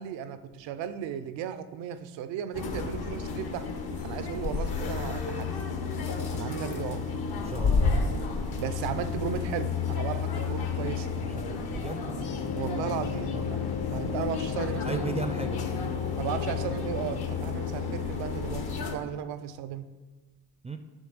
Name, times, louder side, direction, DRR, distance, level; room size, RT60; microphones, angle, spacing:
voice 1, 0.0-3.7 4.0-5.5 6.3-7.1 8.6-11.1 12.5-13.6 13.9-15.1 16.2-19.9, right 9 dB, 85° right, 12 dB, 0.6 m, -35 dB
sound 1, 2.5-19.0, left 5 dB, 60° left, 1.1 m, -31 dB
voice 2, 7.4-8.0 11.2-12.0 13.3-13.4 14.8-15.7 20.6-20.8, right 4 dB, 15° right, 7 dB, 0.4 m, -35 dB
sound 2, 12.1-18.7, left 7 dB, 35° left, 0.6 m, -38 dB
8.1 x 3.2 x 6.1 m, 1.3 s
supercardioid pair, 70°, 42 cm